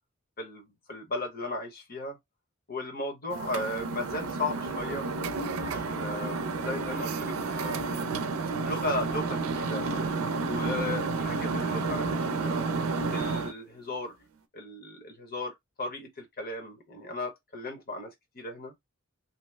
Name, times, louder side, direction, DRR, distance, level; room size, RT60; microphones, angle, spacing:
voice 1, 0.4-2.2 2.7-5.1 5.6-7.3 7.6-7.9 8.6-9.8 10.4-12.7 13.1-14.2 14.5-15.5 15.8-18.7, left 2 dB, 45° left, 1.0 m, -36 dB
sound 1, 3.3-13.5, right 3 dB, 80° right, 0.5 m, -31 dB
2.8 x 2.1 x 3.3 m
head